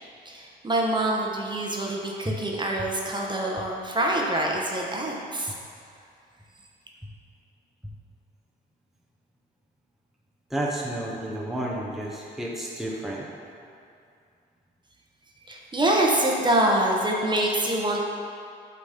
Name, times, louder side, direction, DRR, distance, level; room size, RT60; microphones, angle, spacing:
voice 1, 0.2-5.5 15.5-18.0, right 1 dB, 25° right, -1 dB, 1.1 m, -25 dB
voice 2, 10.5-13.5, right 1 dB, ahead, -4 dB, 1.0 m, -31 dB
8.1 x 4.1 x 5.0 m, 2.4 s
cardioid pair, 90°, 20 cm